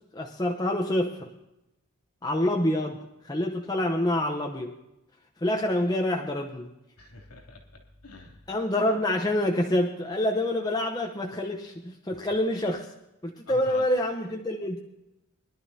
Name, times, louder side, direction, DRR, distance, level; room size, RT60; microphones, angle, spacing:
voice 1, 0.1-1.3 2.2-3.0 3.2-4.7 5.4-6.7 8.5-12.9 13.2-14.8, left 1 dB, 15° left, 1 dB, 0.8 m, -27 dB
voice 2, 7.0-8.5 13.4-13.9, left 2 dB, 90° left, 1 dB, 3.0 m, -47 dB
23.0 x 11.5 x 2.8 m, 0.91 s
head